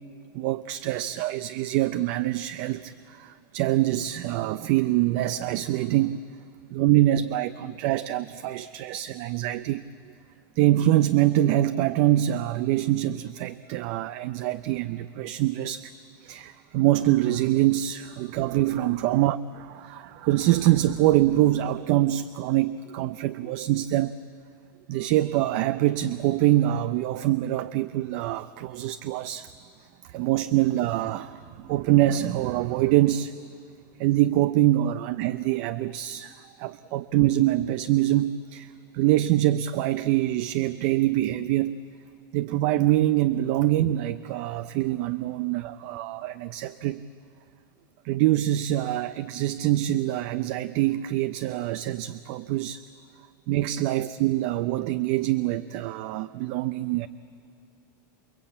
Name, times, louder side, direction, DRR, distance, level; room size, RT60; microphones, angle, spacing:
voice 1, 0.3-6.2 6.7-9.8 10.6-15.9 16.2-24.1 24.9-29.5 30.1-33.3 34.0-41.8 42.3-47.0 48.0-52.8 53.5-57.1, right 14 dB, 50° right, 12 dB, 0.6 m, -24 dB
28.0 x 21.5 x 8.7 m, 2.6 s
supercardioid pair, 150°, 11 cm